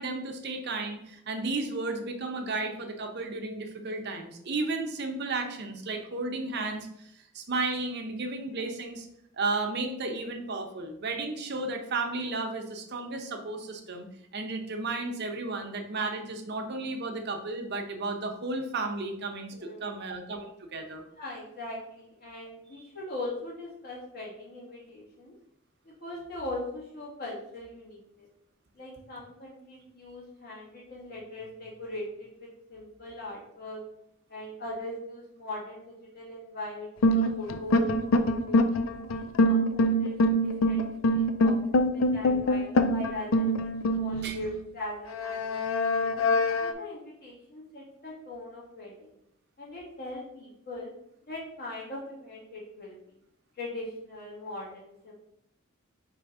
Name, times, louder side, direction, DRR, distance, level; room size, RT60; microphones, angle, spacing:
voice 1, 0.0-9.1 9.3-14.1 14.3-21.0 22.7-22.9 44.2-44.4, right 3 dB, 55° right, 4 dB, 0.7 m, -33 dB
voice 2, 19.5-19.9 21.2-25.3 25.8-28.3 28.7-33.8 34.3-38.6 39.1-45.6 46.0-46.1 46.6-49.1 49.6-50.9 51.2-53.0 53.6-55.1, left 1 dB, 50° left, -5 dB, 1.7 m, -40 dB
sound 1, 37.0-44.5 45.1-46.7, left 1 dB, 75° left, 0.4 m, -24 dB
3.4 x 3.1 x 4.8 m, 0.76 s
head